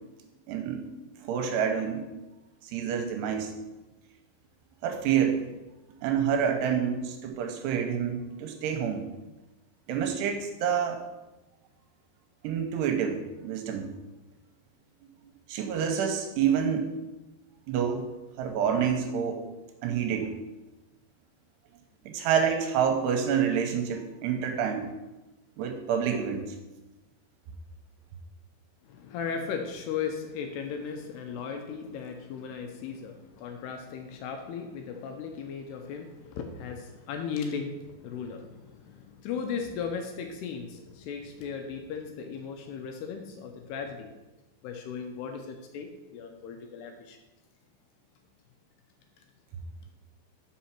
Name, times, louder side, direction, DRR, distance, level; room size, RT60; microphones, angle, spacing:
voice 1, 0.5-0.8 1.2-2.0 2.7-3.5 4.8-5.4 6.0-9.1 9.9-11.0 12.4-13.9 15.5-16.9 17.7-18.0 18.4-19.4 19.8-20.3 22.1-24.9 25.6-26.5, right 7 dB, 80° right, 4 dB, 2.7 m, -27 dB
voice 2, 28.8-44.1 44.6-47.2, left 6 dB, 80° left, 5 dB, 2.5 m, -37 dB
6.1 x 5.6 x 5.8 m, 1.0 s
omnidirectional pair, 5.1 m